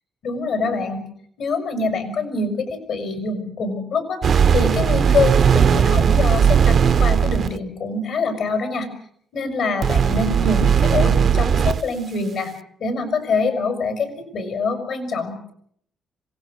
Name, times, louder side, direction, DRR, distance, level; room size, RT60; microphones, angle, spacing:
voice 1, 0.2-1.0 1.4-8.9 9.3-12.5 12.8-14.1 14.3-15.5, left 3 dB, 70° left, 6 dB, 5.9 m, -25 dB
sound 1, 4.2-7.6 9.8-11.8, right 7 dB, 55° right, 0.8 m, -17 dB
26.0 x 18.0 x 6.5 m, 0.63 s
cardioid pair, 90°, 0 cm